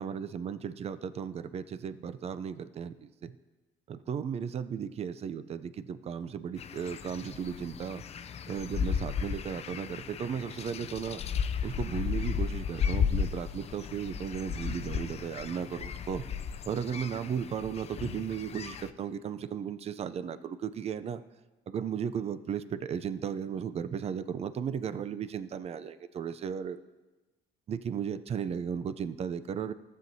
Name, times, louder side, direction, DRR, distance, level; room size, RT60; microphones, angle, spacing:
voice 1, 0.0-3.3 3.9-8.0 8.5-11.2 11.6-16.2 16.7-21.2 21.7-26.8 27.7-29.7, right 7 dB, 40° right, 13 dB, 0.4 m, -35 dB
sound 1, 6.6-18.9, left 7 dB, 40° left, 0.4 m, -34 dB
14.5 x 7.5 x 2.7 m, 1.2 s
cardioid pair, 110°, 17 cm